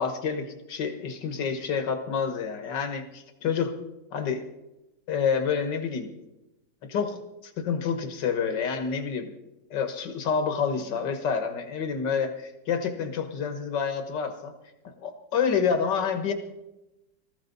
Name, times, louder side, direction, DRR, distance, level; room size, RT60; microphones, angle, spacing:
voice 1, 0.0-3.7 4.1-4.5 5.1-6.1 6.9-9.3 9.7-14.5 14.8-16.3, left 6 dB, 75° left, 7 dB, 2.0 m, -28 dB
19.0 x 14.5 x 4.0 m, 0.97 s
omnidirectional pair, 2.0 m